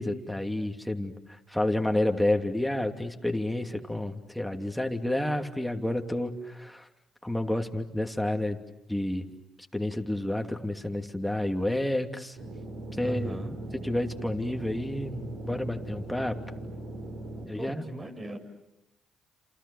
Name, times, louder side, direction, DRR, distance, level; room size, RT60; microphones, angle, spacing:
voice 1, 0.0-6.9 7.2-8.6 8.9-9.3 9.7-12.4 13.0-13.4 13.8-16.4 17.5-17.8, left 1 dB, 5° left, 4 dB, 2.8 m, -30 dB
sound 1, 12.4-17.4, right 1 dB, 65° right, 6.4 m, -39 dB
voice 2, 13.0-13.6 17.5-18.4, right 2 dB, 30° right, 6 dB, 6.6 m, -37 dB
29.5 x 28.0 x 7.1 m, 0.88 s
supercardioid pair, 65°, 0 cm